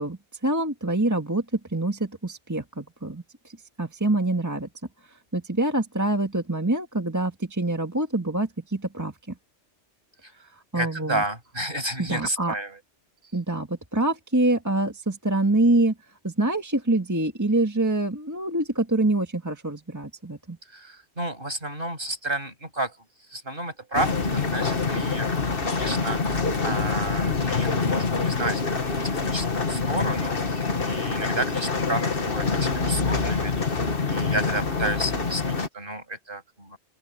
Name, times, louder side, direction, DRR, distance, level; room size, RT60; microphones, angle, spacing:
voice 1, 0.0-4.7 5.3-9.4 10.7-11.2 12.0-12.5 13.3-15.9 16.2-20.6, right 2 dB, 15° right, 1.7 m, -25 dB
voice 2, 10.7-12.8 20.7-23.0 23.3-25.3 25.7-33.8 34.0-36.8, right 1 dB, 50° right, 7.1 m, -31 dB
sound 1, 23.9-35.7, left 4 dB, 50° left, 1.9 m, -26 dB
open air
omnidirectional pair, 1.2 m